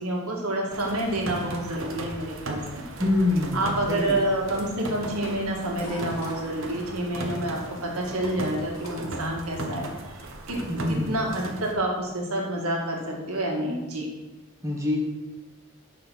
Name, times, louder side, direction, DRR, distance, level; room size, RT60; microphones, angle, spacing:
voice 1, 0.0-2.8 3.5-9.9 10.5-14.1, right 1 dB, 90° right, -1 dB, 1.8 m, -28 dB
sound 1, 0.7-11.7, right 1 dB, 65° right, 1.0 m, -37 dB
voice 2, 3.0-3.6 3.9-4.2 10.7-11.2 14.6-15.0, left 2 dB, 15° right, -2 dB, 1.1 m, -25 dB
sound 2, 5.8-6.6 8.7-9.3 10.8-10.9, equal, 80° left, 2.2 m, -39 dB
6.8 x 5.9 x 5.5 m, 1.1 s
head